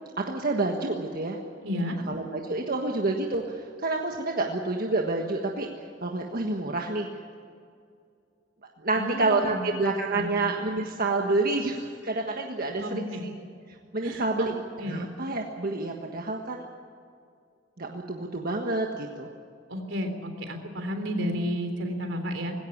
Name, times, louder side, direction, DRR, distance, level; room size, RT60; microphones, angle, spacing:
voice 1, 0.2-1.4 2.1-5.7 6.0-7.1 8.8-13.3 13.9-14.5 14.9-16.6 17.8-19.3, right 2 dB, 50° right, 1 dB, 1.5 m, -28 dB
voice 2, 1.6-2.0 9.0-9.6 10.1-10.3 12.8-13.2 14.0-14.5 14.8-15.0 19.7-22.5, equal, 80° right, 5 dB, 3.5 m, -32 dB
20.0 x 16.5 x 9.9 m, 2.3 s
head